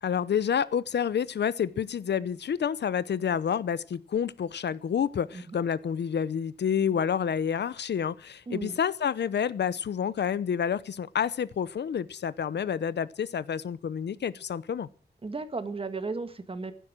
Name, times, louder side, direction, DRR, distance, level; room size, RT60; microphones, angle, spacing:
voice 1, 0.0-14.9, left 8 dB, 85° left, 0.7 m, -29 dB
voice 2, 8.5-8.8 15.2-16.7, right 3 dB, 35° right, 1.6 m, -35 dB
15.0 x 12.0 x 6.2 m
wide cardioid pair, 150°, 17 cm